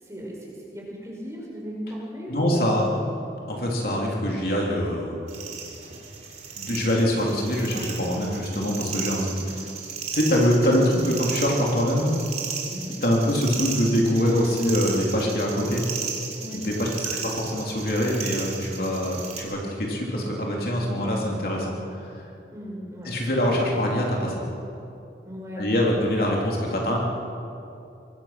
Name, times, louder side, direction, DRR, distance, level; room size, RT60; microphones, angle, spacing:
voice 1, 0.0-3.3 12.7-13.0 16.4-16.6 17.0-17.2 22.5-23.6 25.2-25.8, equal, 15° right, -3 dB, 5.6 m, -37 dB
voice 2, 2.3-2.9 3.5-5.2 6.6-9.7 10.1-12.1 13.0-15.8 16.5-21.8 22.1-22.2 23.1-24.4 25.6-27.0, equal, 55° left, -2 dB, 3.7 m, -24 dB
sound 1, 5.3-19.4, right 6 dB, 40° right, 3.7 m, -35 dB
25.0 x 22.0 x 6.1 m, 2.7 s
head